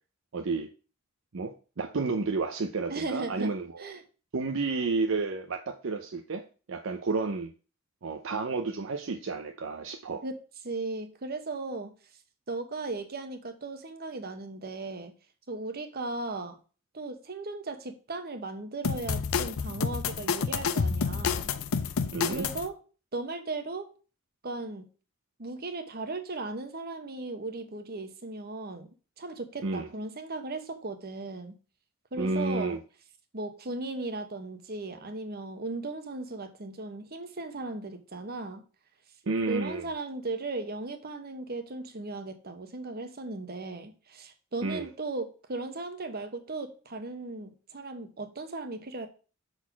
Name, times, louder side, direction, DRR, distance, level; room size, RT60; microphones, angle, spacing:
voice 1, 0.3-0.7 1.3-3.9 4.3-7.5 8.0-10.2 22.1-22.5 29.6-29.9 32.2-32.8 39.3-39.9 44.6-44.9, right 3 dB, 65° right, 0.6 m, -31 dB
voice 2, 2.9-4.0 10.2-10.4 10.6-11.9 12.5-15.1 15.5-16.6 16.9-21.5 22.3-22.8 23.1-23.9 24.4-24.8 25.4-28.9 29.2-31.5 32.1-32.8 33.3-38.6 39.5-49.1, right 3 dB, 50° right, 1.1 m, -37 dB
sound 1, 18.8-22.7, left 5 dB, 80° left, 0.5 m, -29 dB
6.3 x 4.1 x 5.8 m
head